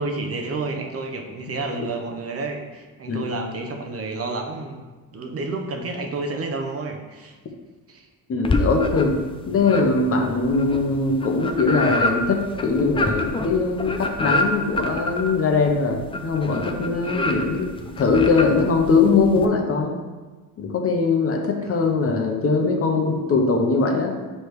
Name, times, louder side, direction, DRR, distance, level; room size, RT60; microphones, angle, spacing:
voice 1, 0.0-7.3 7.9-8.1, right 3 dB, 40° right, 3 dB, 0.7 m, -30 dB
voice 2, 8.3-9.2 9.5-17.7 18.0-20.0 20.6-24.1, left 4 dB, 40° left, 2 dB, 0.8 m, -21 dB
sound 1, 8.4-9.3 9.6-19.5, left 2 dB, 15° left, 0.4 m, -27 dB
6.5 x 3.3 x 4.7 m, 1.3 s
cardioid pair, 120°, 37 cm